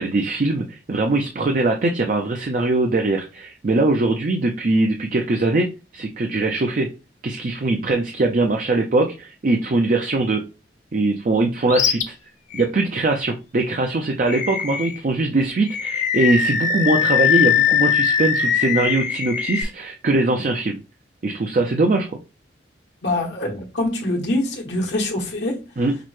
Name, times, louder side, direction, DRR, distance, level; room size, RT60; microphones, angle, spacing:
voice 1, 0.0-6.9 7.2-10.4 10.9-12.1 12.5-20.8 21.2-22.2 25.8-26.0, right 2 dB, 45° right, 0.4 m, -21 dB
Animal, 11.7-12.0 12.5-12.7 14.3-15.0 15.7-19.6, left 8 dB, 45° left, 0.6 m, -21 dB
voice 2, 23.0-25.6, left 1 dB, 80° left, 1.1 m, -24 dB
5.8 x 2.1 x 3.1 m
head